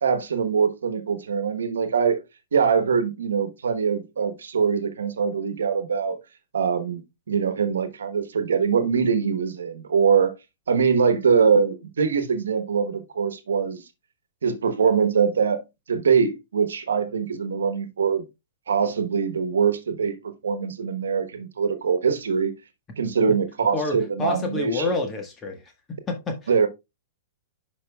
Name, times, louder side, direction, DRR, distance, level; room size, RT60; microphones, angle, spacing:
voice 1, 0.0-2.2 2.5-6.2 6.5-7.0 7.3-10.3 10.7-13.8 14.4-15.6 15.9-18.2 18.7-22.5 23.0-24.8 26.5-26.7, right 6 dB, 85° right, 1.1 m, -23 dB
voice 2, 23.7-25.7 26.1-26.7, left 3 dB, 20° left, 1.3 m, -29 dB
10.5 x 5.2 x 2.3 m
hypercardioid pair, 125°, 0 cm